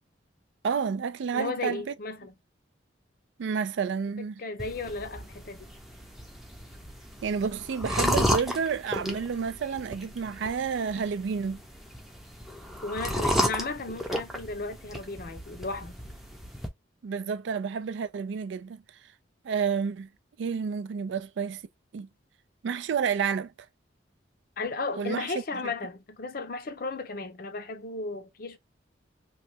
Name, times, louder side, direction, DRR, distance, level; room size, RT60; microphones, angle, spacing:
voice 1, 0.6-1.9 3.4-4.4 7.2-11.6 17.0-18.8 19.4-20.1 20.4-21.6 21.9-22.1 22.6-23.5 25.0-25.3 25.6-25.7, right 6 dB, 70° right, 0.3 m, -30 dB
voice 2, 1.3-2.4 4.4-5.7 12.8-16.0 24.6-28.6, left 3 dB, 50° left, 0.6 m, -35 dB
sound 1, 4.6-16.7, equal, ahead, 0.5 m, -33 dB
3.1 x 2.2 x 2.7 m
head